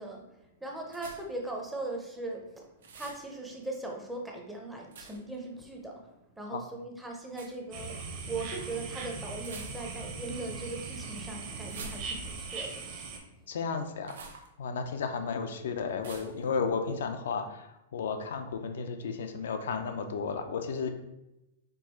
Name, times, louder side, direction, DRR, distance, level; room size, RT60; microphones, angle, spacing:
voice 1, 0.0-2.7 2.9-6.0 6.4-8.0 8.3-12.9, right 2 dB, 5° right, 0 dB, 0.6 m, -39 dB
sound 1, 0.9-1.4 2.8-3.3 4.9-5.4 7.3-7.6 9.4-10.1 11.6-12.5 14.0-14.5 16.0-16.4, right 4 dB, 85° right, 0.7 m, -47 dB
sound 2, 7.7-13.2, right 4 dB, 35° right, 0.8 m, -39 dB
voice 2, 13.5-14.1 14.6-20.9, left 5 dB, 80° left, 6 dB, 0.5 m, -33 dB
4.5 x 2.4 x 4.3 m, 0.92 s
supercardioid pair, 160°, 0 cm